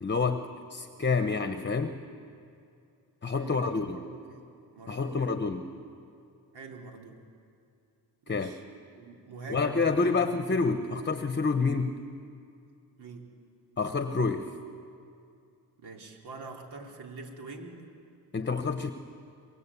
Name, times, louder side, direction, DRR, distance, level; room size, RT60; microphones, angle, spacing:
voice 1, 0.0-2.0 3.2-4.0 4.9-5.7 8.3-8.5 9.5-12.0 13.8-14.5 18.3-18.9, left 4 dB, 30° left, 8 dB, 1.0 m, -28 dB
voice 2, 3.3-4.5 4.7-5.4 6.5-7.2 8.2-8.6 8.9-10.2 13.0-13.3 15.8-17.8, right 3 dB, 80° right, 1 dB, 3.5 m, -45 dB
25.0 x 21.0 x 8.5 m, 2.5 s
cardioid pair, 105°, 39 cm